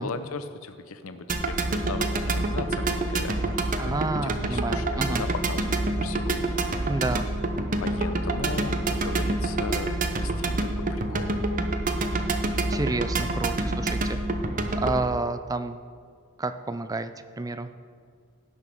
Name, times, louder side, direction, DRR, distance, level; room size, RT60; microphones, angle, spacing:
voice 1, 0.0-7.0 7.8-11.3, left 3 dB, 75° left, 10 dB, 0.7 m, -37 dB
sound 1, 1.3-15.0, right 2 dB, 40° right, 0.7 m, -27 dB
voice 2, 3.8-5.2 6.9-7.3 12.7-14.2 14.7-15.8 16.4-17.1 17.4-17.7, right 2 dB, 15° right, 11 dB, 0.4 m, -29 dB
17.0 x 6.2 x 4.6 m, 2.1 s
head